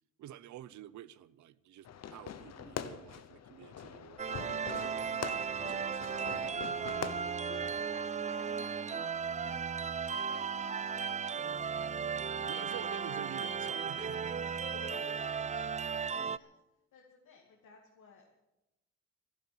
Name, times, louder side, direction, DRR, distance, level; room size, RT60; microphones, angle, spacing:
voice 1, 0.2-6.8 12.5-14.3, right 12 dB, 75° right, 0.8 m, -50 dB
Fireworks, 1.8-7.9, left 8 dB, 60° left, 1.1 m, -44 dB
sound 1, 4.2-16.4, right 6 dB, 25° right, 0.5 m, -36 dB
voice 2, 7.4-12.1 12.4-13.1 14.4-15.7 16.0-16.5 16.9-18.4, left 5 dB, 75° left, 2.8 m, -55 dB
12.5 x 11.5 x 9.0 m
cardioid pair, 90°, 30 cm